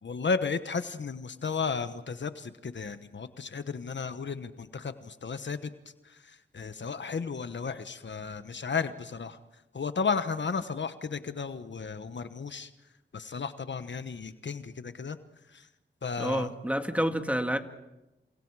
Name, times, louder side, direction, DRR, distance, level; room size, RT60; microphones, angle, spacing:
voice 1, 0.0-5.7 6.0-9.4 9.7-12.7 13.1-15.2 15.5-15.7 16.0-16.5 17.0-17.1, left 5 dB, 70° left, 11 dB, 1.1 m, -34 dB
voice 2, 16.2-17.6, equal, 5° right, 6 dB, 2.0 m, -28 dB
30.0 x 27.5 x 4.8 m, 0.97 s
cardioid pair, 55°, 19 cm